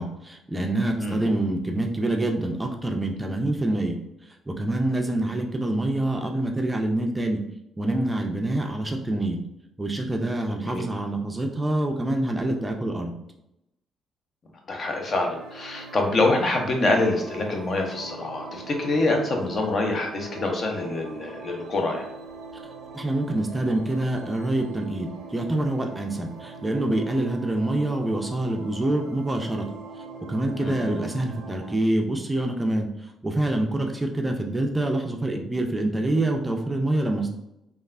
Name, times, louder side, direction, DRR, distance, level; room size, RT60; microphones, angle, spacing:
voice 1, 0.0-4.0 4.5-7.4 7.8-9.4 9.8-13.1 22.9-29.6 30.3-32.9 33.2-37.3, right 1 dB, 15° right, 2 dB, 0.4 m, -26 dB
voice 2, 10.5-10.8 14.7-22.1 30.6-31.0, left 2 dB, 45° left, 2 dB, 0.6 m, -25 dB
sound 1, 14.9-31.8, right 3 dB, 85° right, 0.5 m, -42 dB
3.2 x 2.3 x 2.4 m, 0.85 s
cardioid pair, 90°, 0 cm